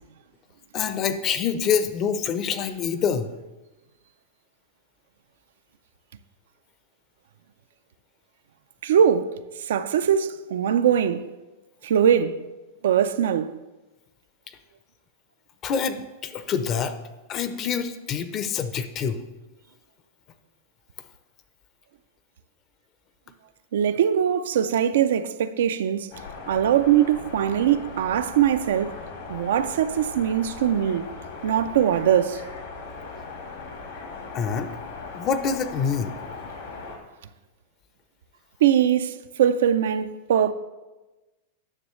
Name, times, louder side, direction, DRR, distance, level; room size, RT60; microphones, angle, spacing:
voice 1, 0.7-3.3 14.5-14.6 15.6-16.9 17.3-19.2 34.3-34.7 35.1-36.1, left 7 dB, 35° left, 0.6 m, -26 dB
voice 2, 8.8-9.3 9.7-11.3 11.8-12.4 12.8-13.6 23.7-26.1 26.5-28.9 29.3-31.1 31.4-32.4 38.6-40.5, right 9 dB, 80° right, 0.4 m, -21 dB
sound 1, 26.1-37.0, left 4 dB, 75° left, 2.2 m, -39 dB
9.9 x 6.2 x 3.1 m
hypercardioid pair, 130°, 0 cm